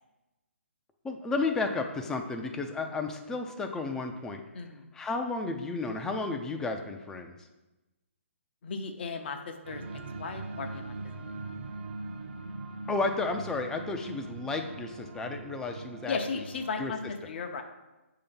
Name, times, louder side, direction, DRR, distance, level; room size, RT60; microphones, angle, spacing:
voice 1, 1.0-4.4 4.9-7.3 12.9-16.2 16.8-16.9, left 3 dB, 5° left, 4 dB, 0.4 m, -32 dB
voice 2, 4.5-4.9 8.6-10.9 16.1-17.6, left 4 dB, 50° left, 5 dB, 0.7 m, -36 dB
sound 1, 9.6-16.7, right 3 dB, 55° right, 0.6 m, -41 dB
6.8 x 2.8 x 5.2 m, 1.0 s
hypercardioid pair, 145°, 7 cm